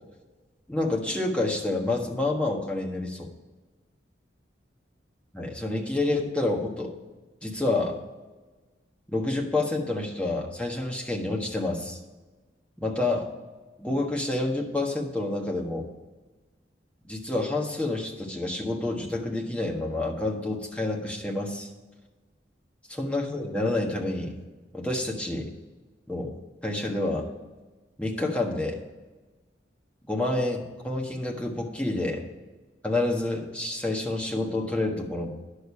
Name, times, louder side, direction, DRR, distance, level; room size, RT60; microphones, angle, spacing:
voice 1, 0.7-3.3 5.3-6.9 7.4-8.0 9.1-12.0 12.8-13.3 13.8-15.9 17.1-21.7 22.9-24.4 24.7-25.5 26.1-27.3 28.0-28.8 30.1-32.2 32.8-35.3, left 2 dB, 5° left, -1 dB, 1.4 m, -28 dB
10.5 x 6.7 x 5.6 m, 1.2 s
head